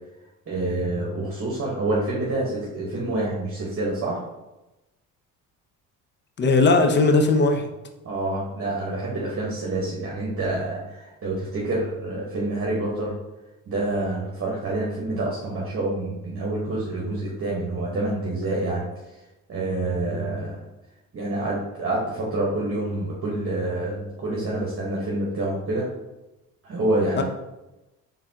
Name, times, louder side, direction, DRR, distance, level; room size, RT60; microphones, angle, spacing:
voice 1, 0.5-4.2 8.0-13.1 13.7-18.8 19.5-20.6 21.1-25.9 26.6-27.2, right 2 dB, 40° right, -4 dB, 1.1 m, -27 dB
voice 2, 6.4-7.7 27.2-27.3, left 3 dB, 30° left, 6 dB, 0.6 m, -18 dB
4.0 x 3.7 x 2.8 m, 0.99 s
supercardioid pair, 85°, 36 cm